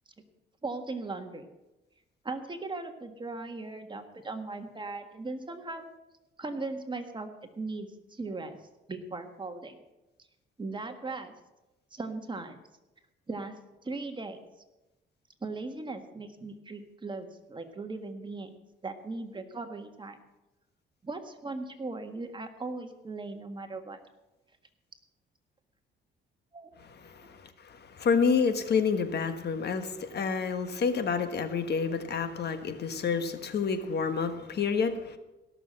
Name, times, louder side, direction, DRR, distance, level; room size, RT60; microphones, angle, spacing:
voice 1, 0.6-1.5 2.2-5.9 6.4-7.3 7.6-8.6 8.9-9.8 10.6-11.3 11.9-12.6 13.3-13.5 13.8-14.4 15.4-18.5 18.8-20.2 21.0-24.0 26.5-26.7 27.2-27.3, right 3 dB, 25° right, 6 dB, 1.7 m, -38 dB
voice 2, 27.0-35.2, left 5 dB, 55° left, 9 dB, 1.4 m, -29 dB
16.5 x 6.9 x 7.7 m, 1.0 s
cardioid pair, 90°, 20 cm